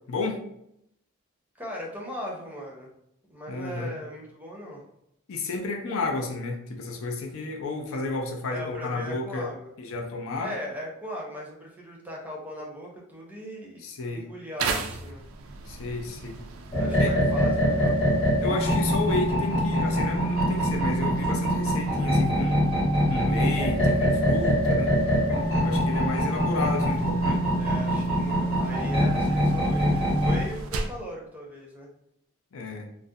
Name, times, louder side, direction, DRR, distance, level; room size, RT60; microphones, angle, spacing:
voice 1, 0.1-0.4 3.5-3.9 5.3-9.5 9.8-10.5 13.8-14.3 15.7-16.4 17.0-17.2 18.4-22.6 23.1-25.0 25.6-27.4 32.5-32.9, left 3 dB, 65° left, 2 dB, 0.4 m, -32 dB
voice 2, 1.6-2.9 3.3-4.8 8.5-9.7 10.4-15.2 16.7-18.2 27.6-31.9, equal, 10° right, -3 dB, 0.5 m, -38 dB
sound 1, 14.6-31.1, right 3 dB, 70° right, 0.3 m, -39 dB
sound 2, 16.7-30.4, equal, 30° left, 0.9 m, -24 dB
2.4 x 2.0 x 2.6 m, 0.78 s
head